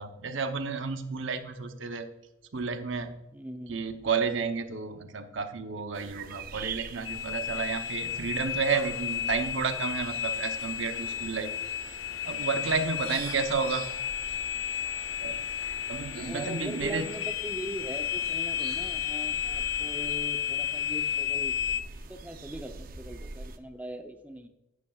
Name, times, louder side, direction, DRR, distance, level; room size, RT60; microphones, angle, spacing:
voice 1, 0.0-2.1 2.5-3.2 3.7-11.5 12.2-13.9 15.2-15.4 15.9-17.1, right 5 dB, 75° right, 8 dB, 0.8 m, -31 dB
voice 2, 3.3-3.8 16.1-21.6 22.1-24.5, right 1 dB, 10° right, 6 dB, 0.7 m, -40 dB
sound 1, 5.9-23.6, right 4 dB, 45° right, 0.6 m, -45 dB
sound 2, 7.0-21.8, left 9 dB, 85° left, 0.5 m, -33 dB
11.0 x 9.7 x 2.4 m, 0.91 s
head